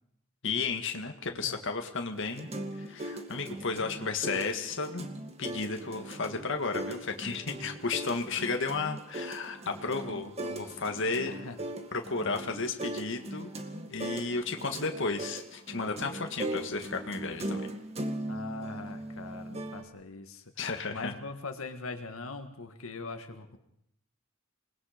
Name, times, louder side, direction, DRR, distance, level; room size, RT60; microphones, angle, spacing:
voice 1, 0.4-2.5 2.8-5.1 5.4-11.3 11.9-13.5 13.9-17.7 20.6-21.1, left 4 dB, 65° left, 5 dB, 1.8 m, -33 dB
voice 2, 1.2-1.6 3.8-4.4 11.3-11.6 18.3-23.6, left 3 dB, 90° left, 6 dB, 1.8 m, -42 dB
sound 1, 2.1-19.8, right 1 dB, 30° right, 1.9 m, -39 dB
27.5 x 20.0 x 5.2 m, 0.74 s
head